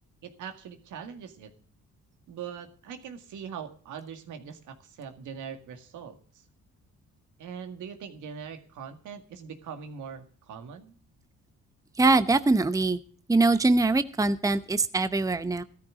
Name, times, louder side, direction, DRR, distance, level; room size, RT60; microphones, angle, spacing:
voice 1, 0.2-1.5 2.3-6.4 7.4-11.0, right 7 dB, 80° right, 7 dB, 2.0 m, -42 dB
voice 2, 12.0-13.0 13.3-15.6, right 3 dB, 10° right, 12 dB, 0.8 m, -23 dB
15.0 x 13.5 x 3.8 m, 0.43 s
cardioid pair, 90°, 30 cm